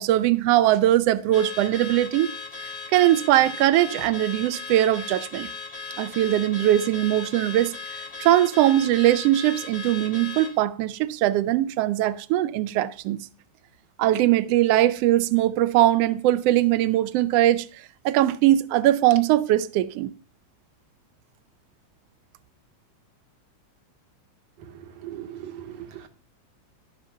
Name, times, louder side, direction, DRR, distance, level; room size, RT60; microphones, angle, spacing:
voice 1, 0.0-2.3 2.9-5.5 6.0-7.7 8.2-13.2 14.0-17.7 18.0-20.1, right 14 dB, 85° right, 1.4 m, -21 dB
Car / Alarm, 1.3-10.6, left 5 dB, 55° left, 0.7 m, -37 dB
voice 2, 25.0-26.1, right 11 dB, 65° right, 2.1 m, -38 dB
12.5 x 5.8 x 5.8 m
omnidirectional pair, 3.5 m